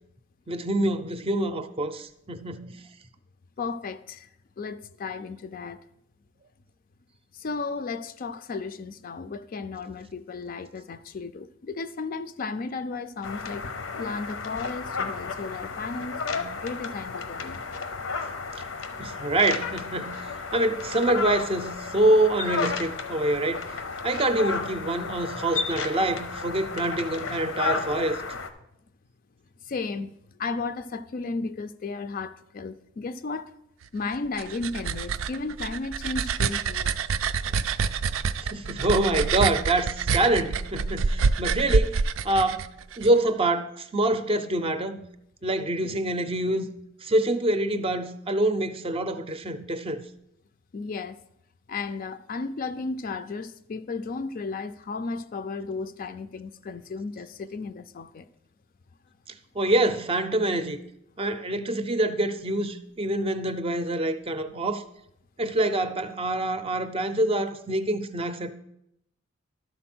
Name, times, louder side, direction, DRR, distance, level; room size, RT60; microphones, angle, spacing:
voice 1, 0.5-2.8 19.0-28.2 37.4-37.6 38.4-42.0 42.2-42.7 43.0-45.0 45.4-46.7 47.0-50.0 59.6-60.8 61.2-64.8 65.4-68.5, right 1 dB, 30° right, 0.5 m, -26 dB
voice 2, 3.6-4.3 4.6-5.8 7.3-13.7 14.0-17.6 29.6-33.5 33.9-36.9 50.7-51.2 51.7-58.3, left 4 dB, 45° left, 0.4 m, -34 dB
sound 1, 13.2-28.5, left 4 dB, 80° left, 0.8 m, -33 dB
sound 2, 34.1-43.1, right 5 dB, 85° right, 0.4 m, -27 dB
12.0 x 4.1 x 6.0 m
head